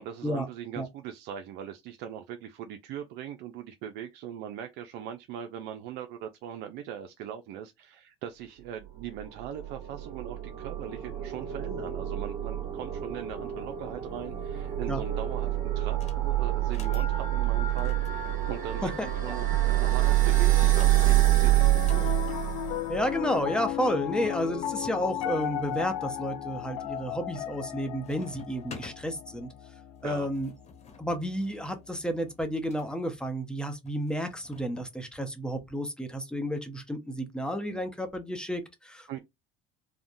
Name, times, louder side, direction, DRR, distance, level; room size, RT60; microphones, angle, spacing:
voice 1, 0.0-22.1 30.0-30.3 39.1-39.2, right 9 dB, 70° right, 0.4 m, -40 dB
sound 1, 9.0-23.1, right 14 dB, 45° right, 1.2 m, -27 dB
sound 2, 15.9-16.2 16.6-17.1 17.7-19.1 19.9-22.2 23.2-23.3 23.5-23.6 24.2-25.0 25.6-26.1 26.6-27.0 27.3-27.8 28.0-29.0 30.0-32.9 33.9-34.9, left 5 dB, 40° left, 1.1 m, -50 dB
Piano, 21.5-31.9, left 11 dB, 85° left, 0.5 m, -36 dB
voice 2, 22.9-29.5 30.0-30.5 31.0-39.2, equal, 5° left, 0.8 m, -31 dB
3.4 x 2.2 x 2.6 m
supercardioid pair, 90°, 17 cm